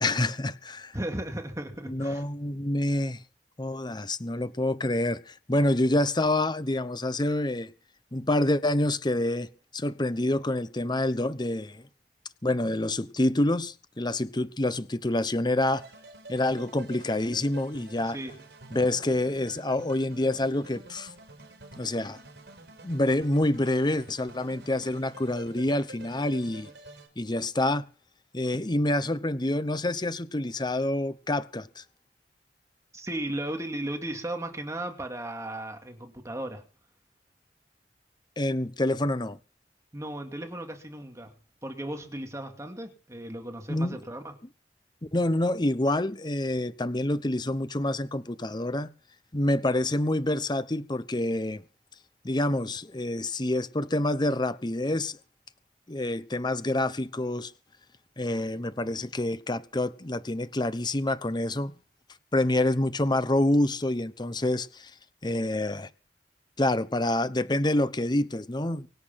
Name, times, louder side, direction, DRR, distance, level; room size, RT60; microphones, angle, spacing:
voice 1, 0.0-0.9 1.9-3.2 3.6-7.7 8.1-11.8 12.4-15.8 16.3-18.2 18.7-21.1 21.8-22.2 22.8-26.7 27.2-27.8 28.3-31.8 38.4-39.4 43.7-44.0 45.1-48.9 49.3-51.6 52.2-55.2 55.9-57.5 58.2-61.7 62.3-64.9 65.2-65.9 66.6-68.9, left 1 dB, 25° left, 0.9 m, -27 dB
voice 2, 0.9-2.2 18.1-18.4 32.9-36.6 39.9-41.3 41.6-44.3, right 1 dB, 15° right, 2.5 m, -35 dB
sound 1, 15.7-27.1, right 2 dB, 70° right, 4.9 m, -48 dB
24.0 x 8.4 x 5.9 m
head